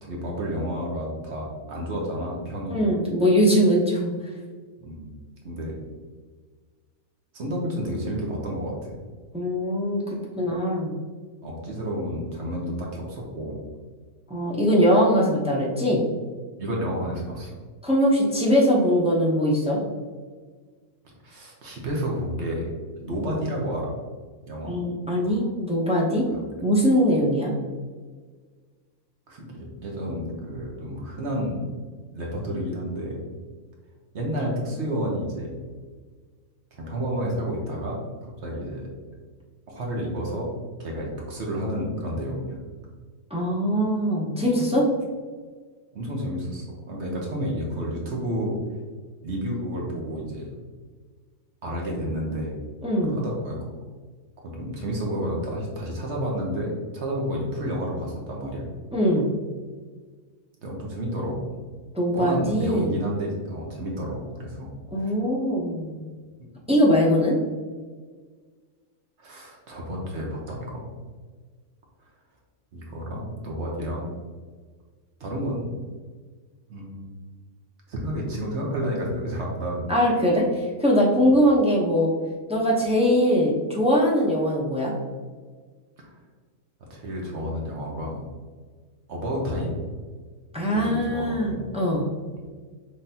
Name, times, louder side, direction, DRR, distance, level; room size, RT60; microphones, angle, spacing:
voice 1, 0.0-2.8 4.8-5.1 5.4-5.7 7.3-9.0 11.4-13.5 16.6-17.5 21.2-22.6 23.0-23.9 24.5-24.7 26.3-26.6 29.3-31.6 32.1-33.2 34.1-35.6 36.7-38.0 38.4-38.9 39.7-40.5 40.8-42.6 45.9-48.5 49.2-50.5 51.6-52.6 53.1-53.6 54.4-58.7 60.6-61.5 62.1-64.7 65.0-65.1 69.2-70.9 72.7-74.1 75.2-75.7 76.7-77.1 77.9-80.0 86.0-86.1 86.9-88.2 89.1-89.8 90.7-91.7, equal, 55° right, -2 dB, 1.2 m, -30 dB
voice 2, 2.7-4.1 9.3-10.0 10.4-11.0 14.3-16.0 17.8-19.8 24.7-26.2 26.6-27.5 43.3-44.8 52.8-53.2 58.9-59.3 61.9-62.9 64.9-66.0 66.7-67.4 79.9-82.1 82.5-84.9 90.5-92.1, equal, 10° right, -3 dB, 0.4 m, -21 dB
5.6 x 3.3 x 2.8 m, 1.5 s
omnidirectional pair, 1.5 m